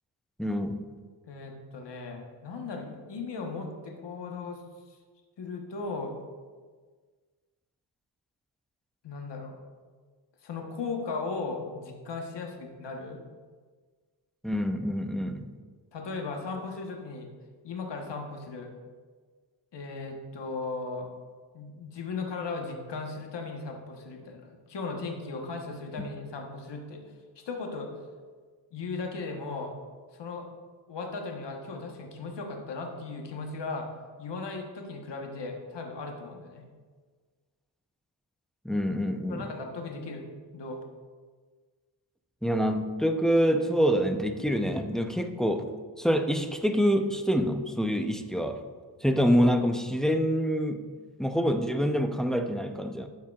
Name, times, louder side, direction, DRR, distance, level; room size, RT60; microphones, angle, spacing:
voice 1, 0.4-0.8 14.4-15.5 38.6-39.5 42.4-45.6 46.0-48.6 49.0-50.8 51.2-53.1, equal, ahead, 6 dB, 0.6 m, -26 dB
voice 2, 1.3-4.6 4.9-5.0 5.4-6.1 9.0-9.6 10.4-13.2 15.9-17.3 17.6-18.7 19.7-21.1 21.5-27.0 27.4-27.9 28.7-29.8 30.1-30.5 30.9-33.9 34.2-36.6 39.3-40.3 40.5-40.8, left 3 dB, 70° left, 2 dB, 1.2 m, -37 dB
12.5 x 4.6 x 2.4 m, 1.5 s
cardioid pair, 55°, 44 cm